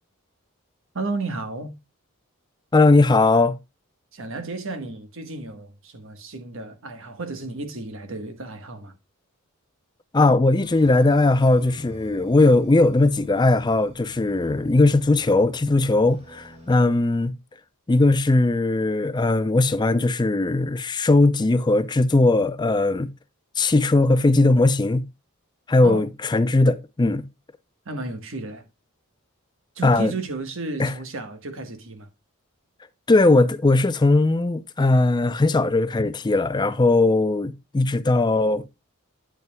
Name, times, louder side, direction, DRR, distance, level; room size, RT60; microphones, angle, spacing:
voice 1, 0.9-1.7 4.1-8.9 25.8-26.1 27.8-28.6 29.7-32.1, right 3 dB, 65° right, 1.3 m, -33 dB
voice 2, 2.7-3.6 10.1-17.3 17.9-23.1 23.6-25.0 25.7-27.2 29.8-30.1 30.8-30.9 33.1-38.6, left 2 dB, 20° left, 0.4 m, -19 dB
sound 1, 10.6-16.8, right 1 dB, 25° right, 2.0 m, -47 dB
9.0 x 8.1 x 2.2 m
head